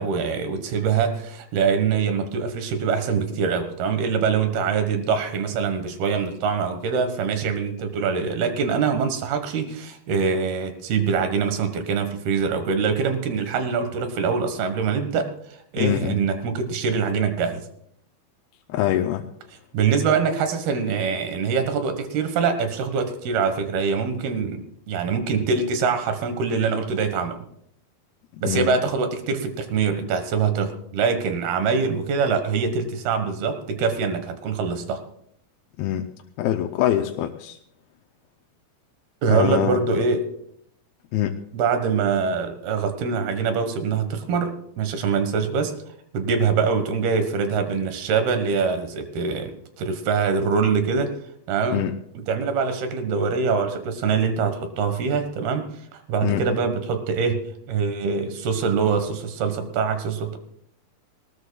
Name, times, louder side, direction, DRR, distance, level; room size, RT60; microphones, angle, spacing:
voice 1, 0.0-15.3 15.7-17.6 19.7-27.4 28.4-35.0 39.2-40.3 41.5-45.7 46.1-49.5 49.8-51.1 51.5-51.9 52.3-55.6 55.9-57.4 57.7-60.4, right 5 dB, 85° right, 7 dB, 3.4 m, -24 dB
voice 2, 15.8-16.2 18.7-19.3 28.4-28.7 35.8-36.1 36.4-37.6 39.3-39.8 41.1-41.4 51.7-51.9 56.2-56.4, left 12 dB, 85° left, 4 dB, 2.6 m, -24 dB
20.5 x 19.0 x 2.3 m, 0.70 s
omnidirectional pair, 4.3 m